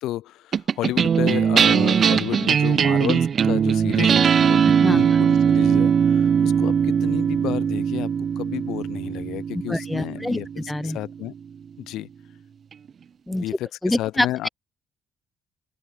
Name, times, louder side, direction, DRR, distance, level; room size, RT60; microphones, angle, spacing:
voice 1, 0.0-8.1 8.4-10.5 10.8-11.3 11.8-12.1 13.3-14.5, left 15 dB, 90° left, 0.9 m, -31 dB
sound 1, 0.5-11.1, right 7 dB, 50° right, 0.6 m, -20 dB
voice 2, 9.5-11.0 13.3-13.4 13.8-14.5, left 1 dB, 10° left, 2.7 m, -25 dB
open air
cardioid pair, 90°, 0 cm